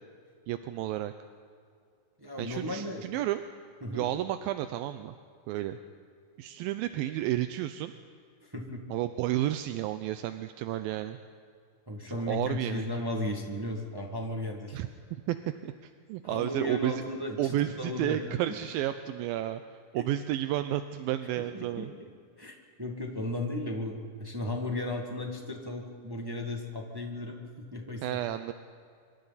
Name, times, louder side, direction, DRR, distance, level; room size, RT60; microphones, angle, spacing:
voice 1, 0.5-1.1 2.4-3.4 3.9-5.1 5.5-5.8 6.4-7.9 8.9-11.2 12.3-12.8 14.7-14.9 15.3-15.4 15.6-17.0 17.4-19.6 19.9-21.9 28.0-28.5, right 13 dB, 80° right, 9 dB, 2.4 m, -31 dB
voice 2, 2.2-3.0 3.8-4.1 8.4-8.8 11.9-14.8 16.2-18.2 19.9-20.0 21.4-22.1 22.4-28.2, left 1 dB, 20° right, 1 dB, 0.5 m, -35 dB
26.5 x 25.0 x 4.1 m, 2.3 s
omnidirectional pair, 4.2 m